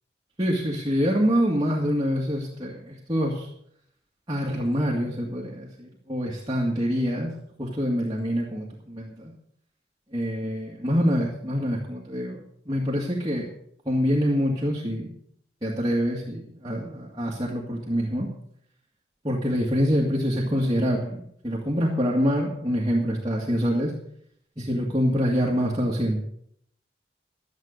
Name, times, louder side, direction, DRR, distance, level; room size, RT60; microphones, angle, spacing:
voice 1, 0.4-3.5 4.3-7.3 7.6-9.3 10.1-12.4 12.7-13.5 13.9-15.1 15.6-18.3 19.2-23.9 24.6-26.2, equal, 25° right, -4 dB, 2.0 m, -25 dB
12.5 x 9.7 x 6.5 m, 0.69 s
head